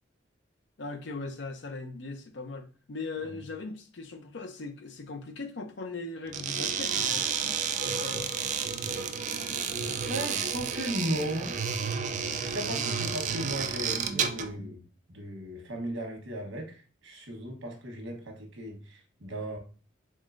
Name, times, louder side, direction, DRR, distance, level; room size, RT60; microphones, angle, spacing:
voice 1, 0.8-8.3 14.6-14.7, left 3 dB, 65° left, 0.6 m, -39 dB
sound 1, 6.3-14.5, right 6 dB, 40° right, 0.3 m, -31 dB
voice 2, 10.1-11.6 12.4-14.8 15.1-19.6, right 1 dB, 85° right, 1.1 m, -36 dB
3.7 x 3.6 x 2.5 m
head